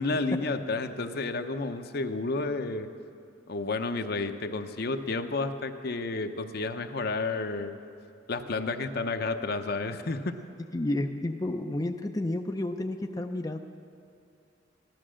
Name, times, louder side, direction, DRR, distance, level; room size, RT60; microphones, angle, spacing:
voice 1, 0.0-2.9 3.5-7.8 8.3-10.2, left 3 dB, 55° left, 7 dB, 0.7 m, -31 dB
voice 2, 10.7-13.6, left 1 dB, 20° left, 4 dB, 0.5 m, -31 dB
15.5 x 12.0 x 6.3 m, 2.5 s
head